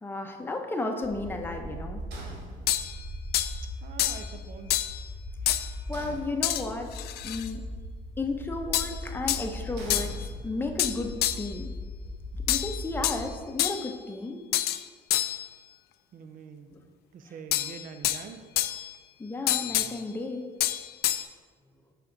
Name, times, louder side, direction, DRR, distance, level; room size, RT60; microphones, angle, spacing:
voice 1, 0.0-2.0 5.9-6.9 7.2-7.6 8.2-11.7 12.3-14.4 16.7-16.9 19.2-20.5, left 2 dB, 10° left, 3 dB, 0.7 m, -33 dB
sound 1, 1.0-13.3, left 1 dB, 10° right, 1.3 m, -39 dB
sound 2, 2.1-3.2 5.9-7.0 9.8-10.9, right 1 dB, 80° right, 1.3 m, -46 dB
sound 3, 2.7-2.9 3.3-3.5 4.0-4.3 4.7-5.0 5.5-5.7 6.4-6.6 6.9-7.5 8.7-9.0 9.3-9.5 9.9-10.1 10.8-11.5 12.5-13.2 13.6-13.9 14.5-14.8 15.1-15.4 17.5-18.2 18.6-18.9 19.5-19.9 20.6-21.2, left 13 dB, 70° left, 0.4 m, -27 dB
voice 2, 3.8-4.9 16.1-16.7 17.1-18.5, right 6 dB, 55° right, 8 dB, 0.6 m, -44 dB
5.9 x 5.5 x 3.9 m, 1.5 s
cardioid pair, 110°, 17 cm